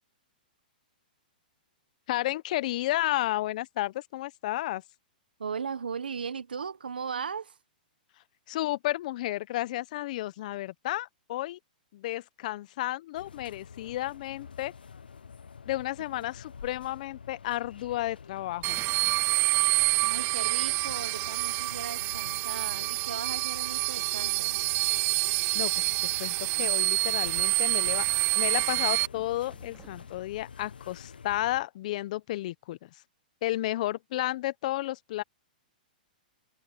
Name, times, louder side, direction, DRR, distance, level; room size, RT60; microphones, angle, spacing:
voice 1, 2.1-4.8 8.5-11.6 11.9-14.7 15.6-18.8 25.5-25.9 26.2-28.1 28.3-32.9 33.4-35.2, left 16 dB, 55° left, 1.1 m, -32 dB
voice 2, 5.4-7.6 16.1-16.3 20.0-24.6, right 6 dB, 85° right, 1.4 m, -37 dB
sound 1, 13.1-31.6, left 6 dB, 85° left, 0.6 m, -48 dB
sound 2, 18.6-19.8 20.7-20.8 21.0-21.4 21.7-21.9 22.4-22.5 22.9-23.2 24.3-24.9 26.9-27.8 28.8-30.4, right 6 dB, 15° right, 5.2 m, -59 dB
sound 3, 18.6-29.1, right 29 dB, 35° right, 0.4 m, -27 dB
hypercardioid pair, 125°, 5 cm